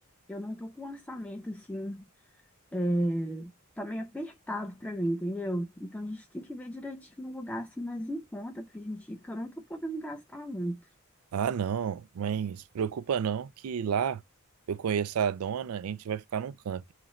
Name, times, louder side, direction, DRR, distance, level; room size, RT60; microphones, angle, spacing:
voice 1, 0.3-2.1 2.7-10.8, equal, 5° left, 0.3 m, -35 dB
voice 2, 11.3-14.2 14.7-16.9, right 7 dB, 80° right, 0.4 m, -31 dB
3.0 x 2.4 x 4.0 m
head